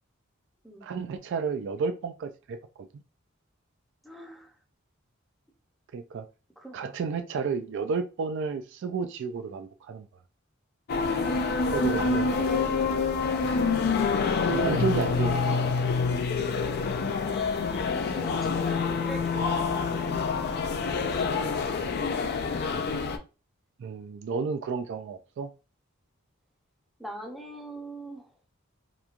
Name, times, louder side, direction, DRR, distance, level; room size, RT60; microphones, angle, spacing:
voice 1, 0.8-3.0 5.9-6.3 6.7-10.1 11.7-12.5 14.4-15.7 23.8-25.5, right 5 dB, 60° right, 0.3 m, -32 dB
voice 2, 4.0-4.5 6.6-6.8 11.1-12.0 12.3-13.1 17.8-22.4 22.7-23.2 27.0-28.3, right 1 dB, ahead, 0.6 m, -43 dB
sound 1, 10.9-23.2, left 4 dB, 50° left, 0.3 m, -27 dB
2.9 x 2.2 x 2.4 m
head